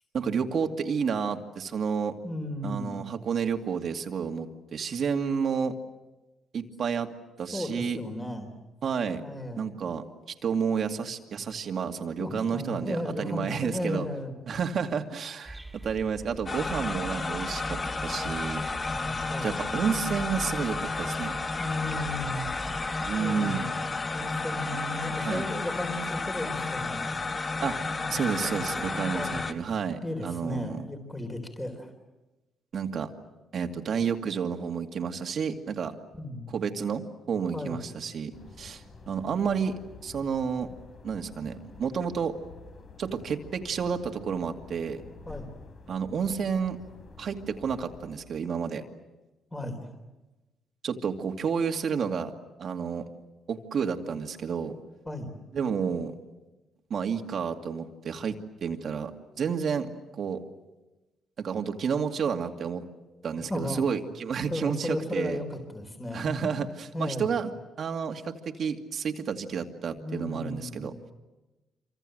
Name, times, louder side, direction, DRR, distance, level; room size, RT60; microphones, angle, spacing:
voice 1, 0.1-2.1 2.6-5.7 6.5-7.1 7.4-8.0 8.8-9.2 9.6-10.0 10.4-14.1 14.5-17.8 18.0-18.6 19.4-21.3 23.0-23.6 24.7-24.8 25.2-25.5 27.6-27.8 28.1-30.8 32.7-33.1 33.5-36.0 36.5-37.0 37.3-40.7 41.0-42.3 43.0-45.0 45.9-46.8 47.2-48.8 50.8-52.3 52.6-53.0 53.5-54.7 55.5-56.1 56.9-59.1 59.4-60.4 61.4-62.9 63.2-65.4 66.1-67.5 67.8-70.9, right 6 dB, 55° right, 5 dB, 2.4 m, -30 dB
voice 2, 2.2-2.9 7.5-8.5 9.2-9.7 12.2-14.6 18.8-19.6 21.6-22.5 23.2-23.7 24.1-27.0 27.9-28.1 28.4-28.9 29.1-29.5 30.0-31.9 36.1-36.5 37.5-37.8 45.3-45.5 49.5-49.9 55.1-55.4 63.5-63.8 64.5-66.5 66.9-67.3 70.0-70.9, left 1 dB, 15° left, 4 dB, 3.9 m, -35 dB
sound 1, 15.4-23.3, right 1 dB, 5° right, 3.1 m, -43 dB
sound 2, 16.5-29.5, left 3 dB, 35° left, 1.7 m, -32 dB
sound 3, 38.3-48.2, left 4 dB, 50° left, 4.0 m, -49 dB
26.5 x 25.5 x 7.9 m, 1.1 s
cardioid pair, 90°, 0 cm